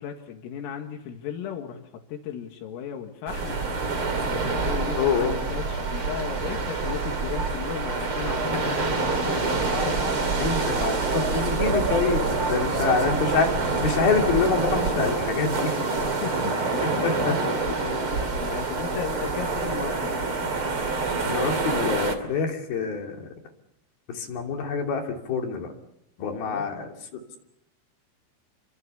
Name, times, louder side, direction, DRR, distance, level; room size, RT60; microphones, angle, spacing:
voice 1, 0.0-3.6 4.2-10.2 11.1-11.4 12.5-13.2 14.1-14.3 15.6-20.1 26.2-26.7, left 8 dB, 85° left, 4 dB, 4.5 m, -36 dB
sound 1, 3.3-22.1, right 3 dB, 35° right, 2.8 m, -26 dB
voice 2, 5.0-5.4 10.4-13.5 13.8-15.8 17.0-17.3 21.2-23.3 24.1-25.7 26.2-26.9, left 5 dB, 50° left, 2 dB, 4.5 m, -26 dB
29.0 x 24.5 x 7.0 m, 0.84 s
omnidirectional pair, 5.8 m